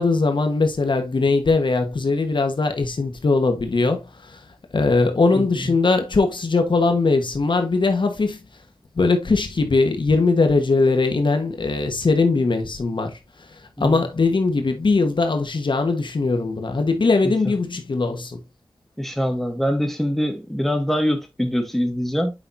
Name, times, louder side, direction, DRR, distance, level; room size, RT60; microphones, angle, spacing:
voice 1, 0.0-4.0 4.7-8.4 9.0-13.1 13.8-18.4, left 3 dB, 65° left, 1.3 m, -20 dB
voice 2, 5.3-5.7 13.8-14.0 17.2-17.5 19.0-22.3, equal, 5° left, 1.8 m, -24 dB
8.5 x 5.6 x 2.7 m
wide cardioid pair, 90°, 9 cm